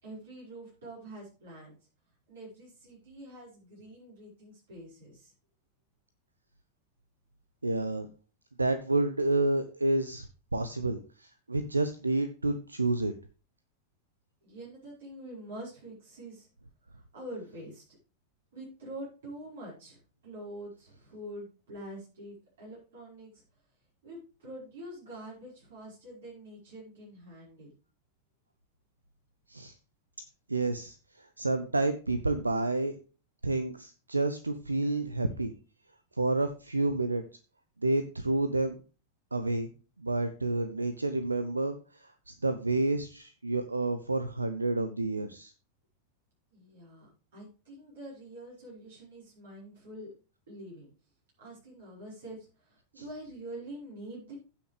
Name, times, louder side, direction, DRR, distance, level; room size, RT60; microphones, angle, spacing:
voice 1, 0.0-1.8 2.3-5.3 14.4-16.5 17.1-17.8 18.5-23.4 24.0-27.7 46.5-50.1 50.5-50.9 51.4-54.4, right 1 dB, 60° right, -5 dB, 4.9 m, -45 dB
voice 2, 7.6-8.1 8.6-10.3 10.5-13.1 29.5-29.8 30.5-33.0 33.4-35.5 36.2-37.2 37.8-38.8 39.3-39.7 40.0-45.5 53.0-53.1, right 2 dB, 80° right, 11 dB, 0.6 m, -29 dB
15.5 x 5.8 x 3.3 m, 0.34 s
figure-of-eight pair, 90°, 0 cm